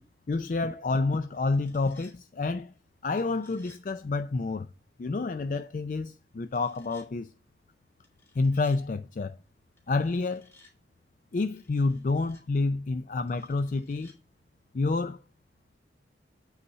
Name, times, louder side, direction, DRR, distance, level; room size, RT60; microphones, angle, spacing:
voice 1, 0.3-2.7 3.0-4.7 5.0-7.3 8.4-9.4 9.9-10.5 11.3-14.1 14.7-15.2, left 3 dB, 45° left, 0.4 m, -29 dB
sound 1, 1.3-2.2 3.2-3.8 6.5-7.1 8.0-8.8 9.8-10.7 11.6-12.4 13.3-14.2, left 2 dB, 15° left, 2.1 m, -59 dB
8.3 x 4.1 x 5.5 m
head